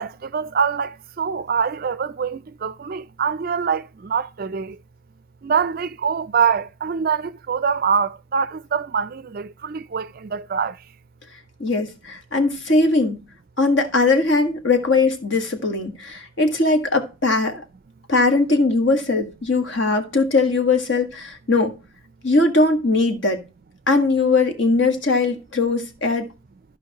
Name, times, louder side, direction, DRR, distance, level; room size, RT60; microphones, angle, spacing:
voice 1, 0.0-4.8 5.4-10.8, right 6 dB, 45° right, 0.4 m, -24 dB
voice 2, 11.6-13.2 13.6-17.6 18.1-21.7 22.2-23.4 23.9-26.3, left 3 dB, 60° left, 1.6 m, -20 dB
14.5 x 5.2 x 2.9 m
head